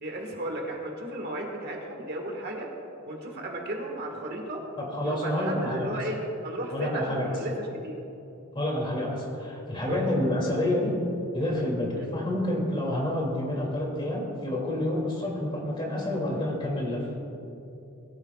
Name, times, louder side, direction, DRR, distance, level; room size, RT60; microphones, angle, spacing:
voice 1, 0.0-2.7 3.1-4.6 5.0-6.2 6.4-8.0 9.9-10.1 11.9-12.0, right 1 dB, 50° right, 0 dB, 1.8 m, -34 dB
voice 2, 4.8-5.9 6.7-7.3 8.5-10.9 11.3-17.1, left 1 dB, 25° left, -2 dB, 2.7 m, -28 dB
21.0 x 14.0 x 2.4 m, 2.9 s
head